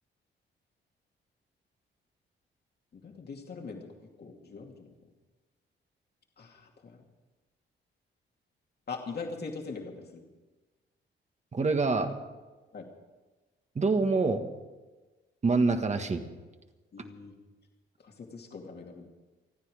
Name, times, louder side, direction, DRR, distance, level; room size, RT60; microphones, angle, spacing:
voice 1, 2.9-4.9 6.4-7.0 8.9-10.2 12.7-12.9 16.9-17.3 18.0-19.1, left 4 dB, 55° left, 1 dB, 2.6 m, -42 dB
voice 2, 11.5-12.2 13.7-14.5 15.4-16.2, right 3 dB, 35° right, 6 dB, 1.7 m, -26 dB
29.0 x 9.9 x 5.0 m, 1.2 s
cardioid pair, 90°, 20 cm